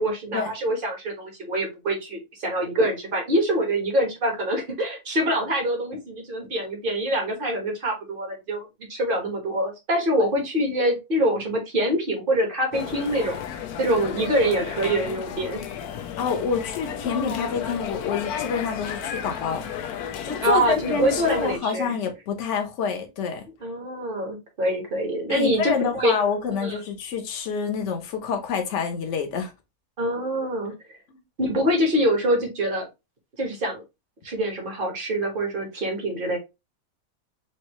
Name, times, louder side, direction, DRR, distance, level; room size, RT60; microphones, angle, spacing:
voice 1, 0.0-13.4 13.8-15.6 20.4-21.9 23.6-25.6 25.9-26.2 26.6-26.8 30.0-30.7 31.4-32.9 33.4-33.8 34.2-36.4, right 1 dB, 35° right, 1.4 m, -25 dB
sound 1, 12.7-21.6, left 8 dB, 90° left, 1.1 m, -33 dB
voice 2, 16.2-19.6 20.2-23.4 25.3-29.5 31.1-31.2, left 6 dB, 55° left, 1.1 m, -27 dB
4.5 x 2.6 x 3.0 m
omnidirectional pair, 1.6 m